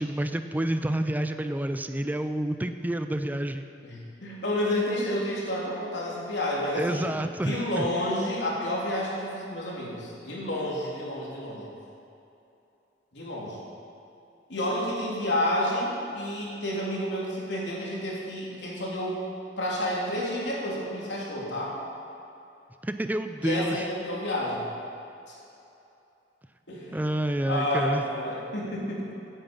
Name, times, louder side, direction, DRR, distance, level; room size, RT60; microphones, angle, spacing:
voice 1, 0.0-3.7 6.7-7.9 22.8-23.9 26.9-28.0, right 1 dB, 10° right, 8 dB, 0.4 m, -29 dB
voice 2, 3.8-7.0 7.4-11.7 13.1-13.6 14.5-19.2 19.6-21.8 23.4-24.6 25.3-25.4 26.7-26.9 27.4-29.1, left 1 dB, 80° left, -4 dB, 3.6 m, -30 dB
16.5 x 9.1 x 5.5 m, 2.8 s
head